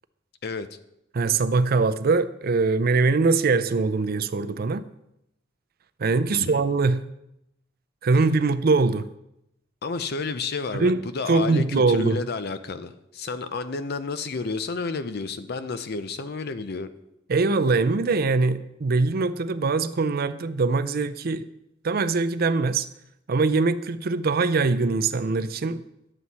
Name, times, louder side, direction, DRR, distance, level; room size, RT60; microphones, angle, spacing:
voice 1, 1.1-4.8 6.0-7.1 8.0-9.1 10.7-11.0 11.3-12.2 17.3-21.5 21.8-22.9 23.3-25.8, right 3 dB, 55° right, 0.5 m, -22 dB
voice 2, 6.3-6.6 9.8-16.9, left 4 dB, 55° left, 0.6 m, -31 dB
11.0 x 7.9 x 4.2 m
head